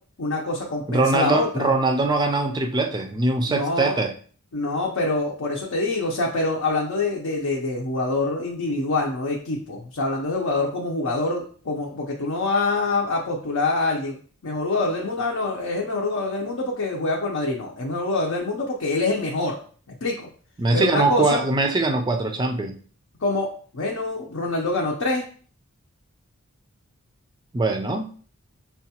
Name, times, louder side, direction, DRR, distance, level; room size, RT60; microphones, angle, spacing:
voice 1, 0.2-1.7 3.5-4.0 4.5-14.2 14.4-19.6 19.9-20.3 20.7-21.4 23.2-23.5 23.7-25.2, left 2 dB, 65° left, -1 dB, 0.6 m, -25 dB
voice 2, 0.9-4.1 20.6-22.8 27.5-28.1, right 2 dB, 20° right, 5 dB, 0.4 m, -22 dB
5.7 x 2.3 x 2.8 m, 0.44 s
head